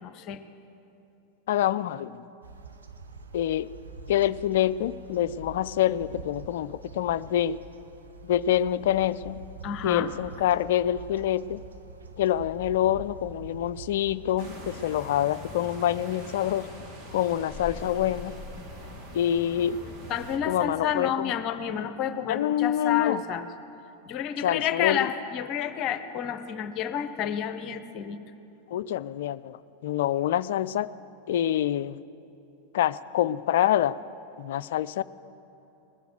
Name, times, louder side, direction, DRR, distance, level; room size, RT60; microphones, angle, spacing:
voice 1, 0.0-0.4 9.6-10.1 20.1-23.5 24.1-28.2, left 9 dB, 40° left, 11 dB, 0.7 m, -30 dB
voice 2, 1.5-2.2 3.3-3.7 4.1-7.6 8.2-9.4 9.8-11.6 12.2-16.7 17.1-18.3 19.1-19.8 20.4-21.4 22.3-23.2 24.4-25.1 28.7-30.9 31.3-32.0 32.7-34.0 34.4-35.0, left 11 dB, 55° left, 17 dB, 0.3 m, -26 dB
sound 1, 2.4-15.0, right 4 dB, 70° right, 0.8 m, -45 dB
sound 2, 14.4-20.4, equal, 40° right, 2.3 m, -42 dB
20.0 x 6.9 x 7.8 m, 2.9 s
figure-of-eight pair, 90°, 0 cm